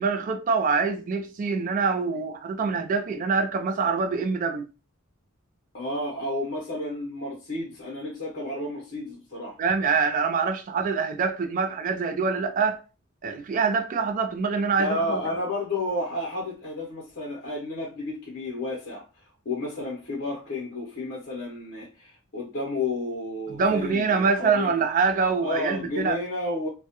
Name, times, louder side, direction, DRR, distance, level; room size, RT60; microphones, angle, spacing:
voice 1, 0.0-4.7 9.6-12.8 13.2-15.2 23.5-26.2, right 5 dB, 40° right, 0.3 m, -25 dB
voice 2, 5.7-9.6 14.8-19.0 19.4-24.7 25.4-26.7, left 2 dB, 55° left, 0.7 m, -31 dB
2.3 x 2.0 x 2.8 m
head